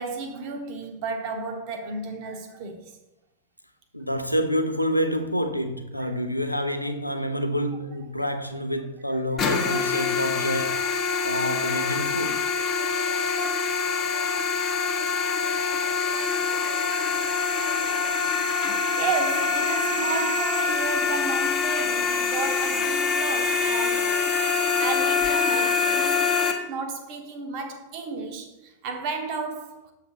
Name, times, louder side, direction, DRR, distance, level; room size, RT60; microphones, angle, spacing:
voice 1, 0.0-3.0 16.3-24.2 24.8-29.9, right 4 dB, 45° right, 0.9 m, -33 dB
voice 2, 3.9-10.9 11.2-12.4, equal, 90° left, 0.5 m, -27 dB
sound 1, 9.4-26.5, left 5 dB, 30° left, 0.9 m, -25 dB
7.1 x 3.3 x 5.4 m
figure-of-eight pair, 90°, 0 cm